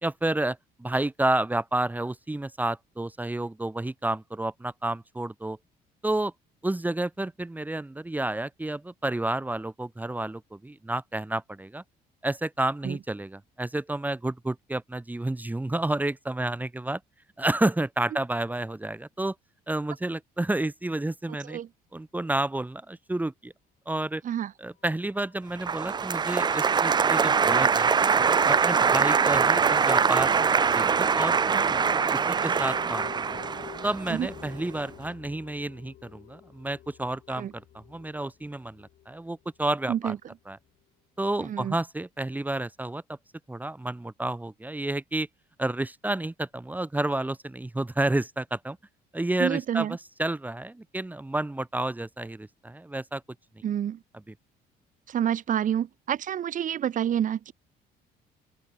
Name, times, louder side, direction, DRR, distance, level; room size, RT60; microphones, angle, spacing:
voice 1, 0.0-5.6 6.0-6.3 6.6-11.8 12.2-17.0 17.4-19.3 19.7-21.6 21.9-23.5 23.9-24.2 24.6-28.1 28.5-30.3 30.7-31.4 31.7-31.8 32.1-33.4 33.8-40.1 40.5-40.6 41.2-43.0 43.5-45.3 45.6-48.8 49.1-53.2, right 2 dB, 10° right, 2.2 m, -30 dB
sound 1, 25.1-39.5, left 13 dB, 65° left, 5.6 m, -47 dB
Applause, 25.6-34.7, right 6 dB, 25° right, 0.6 m, -23 dB
voice 2, 41.4-41.8 49.4-50.0 53.6-54.0 55.1-57.5, right 10 dB, 50° right, 1.6 m, -28 dB
open air
cardioid pair, 110°, 17 cm